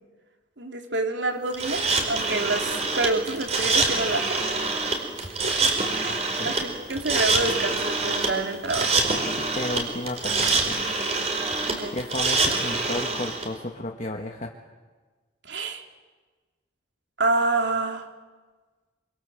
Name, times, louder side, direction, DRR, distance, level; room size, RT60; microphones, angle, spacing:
voice 1, 0.6-4.4 5.2-5.6 5.9-9.0 11.7-12.0 15.4-15.8 17.2-18.1, right 2 dB, 80° right, 4 dB, 3.3 m, -28 dB
sound 1, 1.5-13.4, right 3 dB, 35° right, 4.7 m, -25 dB
voice 2, 6.1-6.6 9.4-10.8 11.9-14.5, left 1 dB, 45° left, 1 dB, 1.7 m, -33 dB
27.0 x 26.5 x 7.8 m, 1.3 s
head